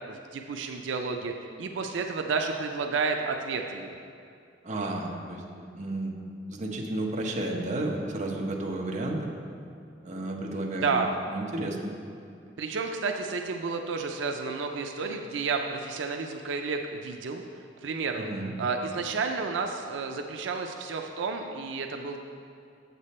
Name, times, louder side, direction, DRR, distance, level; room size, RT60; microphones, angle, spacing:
voice 1, 0.1-4.0 10.7-11.1 12.6-17.4 17.8-18.3 18.6-22.2, right 4 dB, 85° right, 3 dB, 0.4 m, -31 dB
voice 2, 4.6-5.4 5.7-6.2 6.5-9.2 10.0-10.9 11.3-11.9 18.2-18.5, right 2 dB, 40° right, 0 dB, 0.9 m, -32 dB
7.4 x 6.8 x 4.2 m, 2.5 s
head